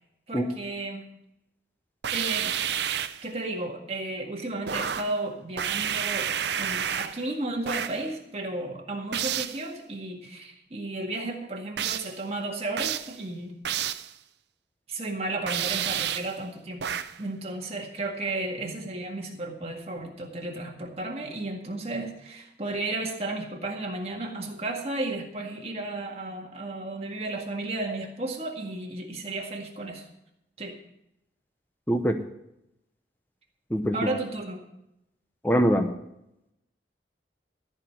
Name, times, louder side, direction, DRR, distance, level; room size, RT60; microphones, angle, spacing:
voice 1, 0.3-1.0 2.1-2.6 3.2-13.9 14.9-16.8 17.2-30.1 30.6-30.7 33.9-34.6, right 2 dB, 35° right, 1 dB, 1.8 m, -33 dB
sound 1, 2.0-3.3 4.7-5.2 5.6-7.2 7.7-8.0 9.1-9.6 11.8-12.2 12.8-13.2 13.6-14.1 15.5-16.4 16.8-17.2, right 9 dB, 70° right, 0.5 m, -30 dB
voice 2, 31.9-32.2 33.7-34.1 35.4-35.9, equal, 10° left, 6 dB, 0.8 m, -23 dB
14.5 x 5.0 x 9.0 m, 0.84 s
head